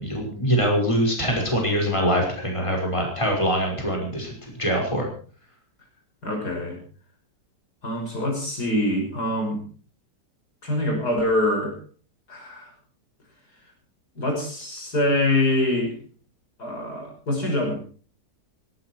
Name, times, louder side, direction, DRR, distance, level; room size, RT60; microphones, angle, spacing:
voice 1, 0.0-4.3 4.6-5.1, equal, 15° left, 1 dB, 5.7 m, -23 dB
voice 2, 6.2-6.8 7.8-9.6 10.6-11.8 12.3-12.7 14.1-16.0 16.6-17.8, left 1 dB, 65° left, 2 dB, 6.7 m, -24 dB
18.5 x 16.5 x 4.6 m, 0.41 s
omnidirectional pair, 1.8 m